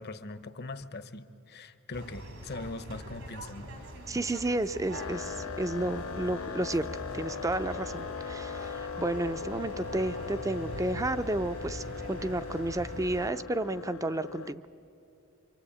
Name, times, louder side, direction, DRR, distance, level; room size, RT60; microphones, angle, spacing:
voice 1, 0.0-3.7 4.3-4.4, left 2 dB, 50° left, 0.9 m, -41 dB
sound 1, 1.9-13.3, right 1 dB, 75° right, 3.0 m, -43 dB
voice 2, 4.1-6.9 7.1-14.6, right 2 dB, 15° right, 0.5 m, -32 dB
sound 2, 4.9-14.5, left 6 dB, 85° left, 0.5 m, -39 dB
26.0 x 24.5 x 8.7 m
head